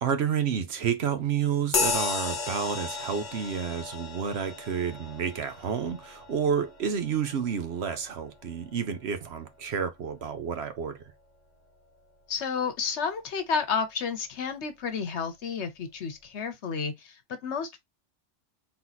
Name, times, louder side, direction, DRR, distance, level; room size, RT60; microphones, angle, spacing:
voice 1, 0.0-11.0, right 7 dB, 60° right, 0.9 m, -30 dB
sound 1, 1.7-9.6, left 4 dB, 40° left, 1.1 m, -34 dB
voice 2, 12.3-17.8, left 5 dB, 65° left, 1.1 m, -31 dB
3.9 x 2.9 x 3.9 m
omnidirectional pair, 1.3 m